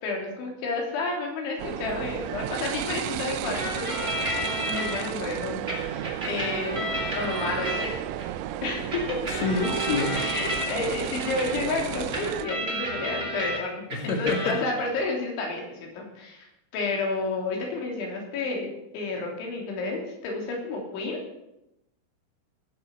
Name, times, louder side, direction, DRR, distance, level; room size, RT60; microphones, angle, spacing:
voice 1, 0.0-4.1 4.4-6.9 7.2-7.9 8.6-9.2 10.1-16.5 16.7-21.2, left 3 dB, 80° left, 0 dB, 5.5 m, -31 dB
sound 1, 1.6-12.5, right 12 dB, 85° right, 2.2 m, -33 dB
sound 2, 3.5-5.0 5.7-8.3 8.9-13.6 13.9-14.8, equal, 15° right, 2.2 m, -32 dB
voice 2, 9.3-10.2 13.9-14.6, left 4 dB, 55° left, 5 dB, 2.1 m, -28 dB
17.5 x 7.7 x 7.0 m, 0.86 s
omnidirectional pair, 5.4 m